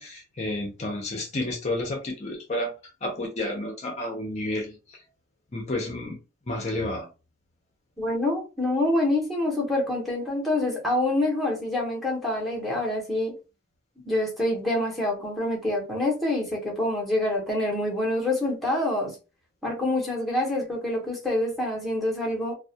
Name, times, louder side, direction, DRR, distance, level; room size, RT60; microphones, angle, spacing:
voice 1, 0.0-2.7 3.0-5.0 5.5-6.2 6.5-7.1, left 1 dB, 35° left, 1 dB, 0.5 m, -31 dB
voice 2, 8.0-13.3 14.0-19.1 19.6-22.5, left 1 dB, ahead, -3 dB, 0.7 m, -26 dB
2.2 x 2.0 x 2.7 m, 0.31 s
head